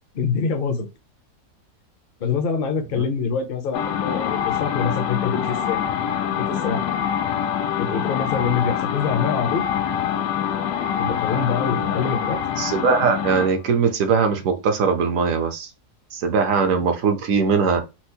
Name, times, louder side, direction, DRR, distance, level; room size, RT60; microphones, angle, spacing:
voice 1, 0.1-0.9 2.2-5.8 6.3-6.9 7.8-9.7 11.0-12.4, left 6 dB, 50° left, 0.6 m, -25 dB
sound 1, 3.7-13.6, left 9 dB, 90° left, 1.2 m, -25 dB
voice 2, 12.6-15.7 16.1-17.8, right 5 dB, 65° right, 1.0 m, -20 dB
4.3 x 2.0 x 2.7 m
omnidirectional pair, 1.7 m